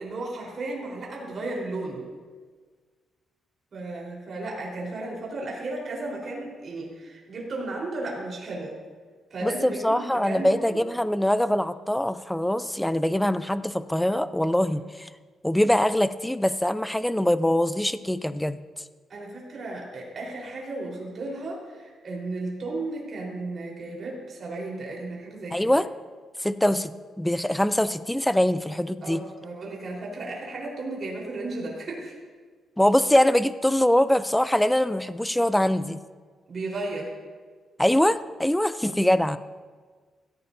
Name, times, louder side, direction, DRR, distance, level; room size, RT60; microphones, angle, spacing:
voice 1, 0.0-2.0 3.7-8.8 9.3-10.8 14.7-14.8 19.1-25.7 29.0-32.2 36.5-37.1, right 2 dB, 40° right, -3 dB, 4.0 m, -34 dB
voice 2, 9.4-15.1 15.4-18.6 25.5-25.9 26.4-29.2 32.8-36.0 37.8-39.4, left 1 dB, 5° left, 13 dB, 0.4 m, -23 dB
17.0 x 15.0 x 2.7 m, 1.5 s
cardioid pair, 140°, 0 cm